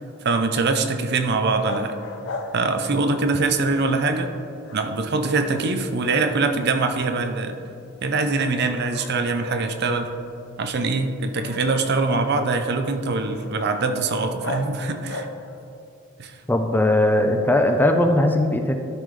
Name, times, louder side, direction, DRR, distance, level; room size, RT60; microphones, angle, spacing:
voice 1, 0.2-2.0 2.5-4.3 4.7-7.6 8.0-10.1 10.6-15.3 16.2-16.3, right 3 dB, 55° right, 7 dB, 0.6 m, -23 dB
sound 1, 1.5-3.3 3.6-5.2 5.4-6.2 6.5-7.7 8.1-8.3 8.9-15.7, left 2 dB, 65° left, 0.7 m, -38 dB
voice 2, 16.5-18.8, left 1 dB, 10° left, 5 dB, 0.4 m, -19 dB
12.5 x 5.3 x 3.2 m, 2.5 s
head